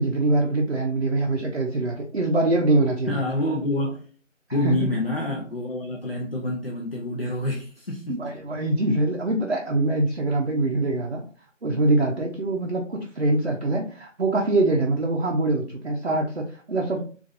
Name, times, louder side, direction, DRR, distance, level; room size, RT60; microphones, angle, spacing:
voice 1, 0.0-3.2 4.6-4.9 8.1-11.2 11.6-17.0, right 2 dB, 55° right, 0.6 m, -23 dB
voice 2, 3.1-4.1 4.5-8.2, left 1 dB, 50° left, 0.6 m, -27 dB
3.9 x 2.5 x 2.5 m
figure-of-eight pair, 170°, 39 cm